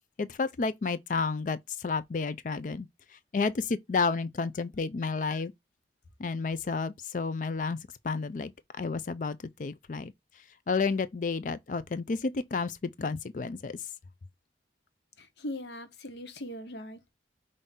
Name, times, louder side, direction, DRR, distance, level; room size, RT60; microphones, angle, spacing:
voice 1, 0.2-2.9 3.3-5.5 6.2-7.8 8.0-10.1 10.7-13.8, left 4 dB, 45° left, 0.4 m, -31 dB
voice 2, 15.2-17.1, left 1 dB, 75° left, 0.8 m, -40 dB
5.5 x 2.6 x 3.5 m
head